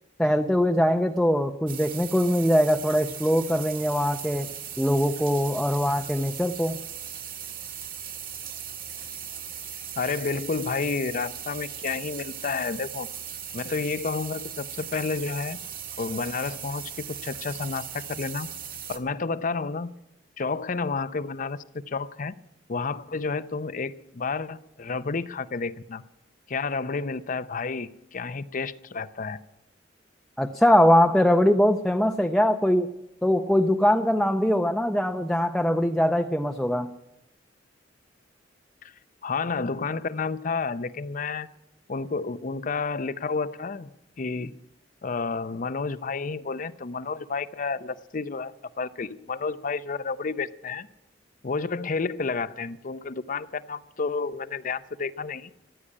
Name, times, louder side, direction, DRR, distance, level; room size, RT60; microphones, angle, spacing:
voice 1, 0.2-4.5 4.8-6.8 30.4-32.9 33.2-36.9, equal, 5° left, 4 dB, 0.6 m, -22 dB
sound 1, 1.7-19.0, right 8 dB, 50° right, 1.7 m, -38 dB
voice 2, 10.0-13.1 13.5-15.6 16.0-18.5 18.9-19.9 20.4-21.6 21.9-22.3 22.7-26.0 26.5-29.4 38.8-38.9 39.2-41.5 41.9-43.9 44.2-44.5 45.0-50.9 51.4-55.5, left 4 dB, 45° left, 15 dB, 0.6 m, -30 dB
15.0 x 10.0 x 8.5 m, 0.88 s
head